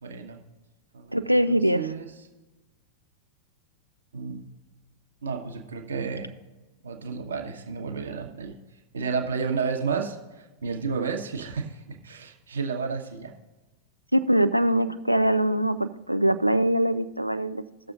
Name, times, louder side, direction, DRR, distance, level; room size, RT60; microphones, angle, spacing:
voice 1, 0.0-0.4 0.9-2.1 4.1-4.5 5.2-6.3 6.8-8.6 8.9-13.3, right 5 dB, 70° right, 4 dB, 1.1 m, -32 dB
voice 2, 1.1-1.9 14.1-17.6, right 1 dB, 90° right, 11 dB, 0.4 m, -23 dB
18.0 x 6.7 x 2.5 m, 1.1 s
figure-of-eight pair, 90°, 0 cm